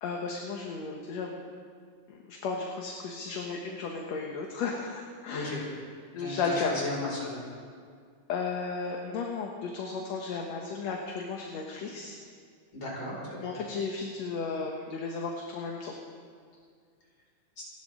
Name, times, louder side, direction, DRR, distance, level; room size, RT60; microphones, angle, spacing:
voice 1, 0.0-1.5 2.1-5.6 6.1-6.8 8.3-12.2 13.4-16.0, left 4 dB, 65° left, 0 dB, 2.3 m, -34 dB
voice 2, 5.3-5.6 6.2-7.4 12.7-13.5 17.6-17.7, left 2 dB, 35° left, -5 dB, 6.1 m, -35 dB
29.5 x 12.0 x 3.7 m, 2.1 s
omnidirectional pair, 3.5 m